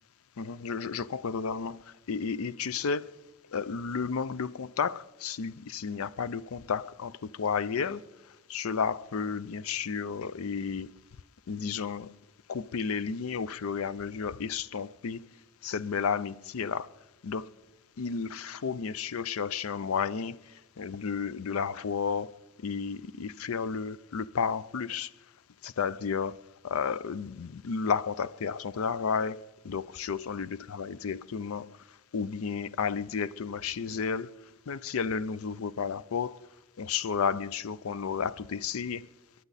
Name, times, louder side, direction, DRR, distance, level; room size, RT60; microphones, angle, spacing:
voice 1, 0.4-3.2 3.5-8.0 8.5-10.9 11.5-12.2 12.5-15.3 15.6-16.9 17.2-17.5 18.0-22.3 22.6-25.1 25.6-31.8 32.1-34.3 34.7-36.5 36.8-39.1, left 6 dB, 80° left, 0.5 m, -32 dB
26.5 x 11.0 x 4.1 m
head